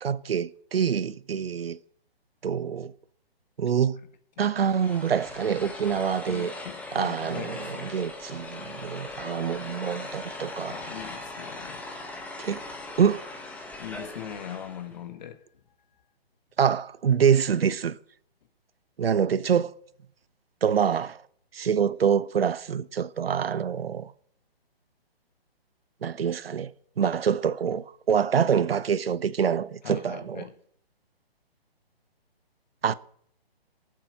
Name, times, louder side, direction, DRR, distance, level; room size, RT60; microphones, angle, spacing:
voice 1, 0.0-1.8 2.4-2.9 3.6-4.0 4.4-6.5 6.9-10.7 12.4-12.6 13.0-13.2 16.6-18.0 19.0-19.7 20.6-21.2 21.5-24.1 26.0-26.7 27.0-30.4 32.8-32.9, right 7 dB, 70° right, 0.8 m, -25 dB
sound 1, 4.6-14.9, left 2 dB, 5° left, 0.9 m, -40 dB
voice 2, 6.3-8.0 10.7-11.8 13.8-15.4 29.8-30.5, left 8 dB, 45° left, 1.6 m, -40 dB
17.5 x 7.6 x 5.2 m
hypercardioid pair, 150°, 31 cm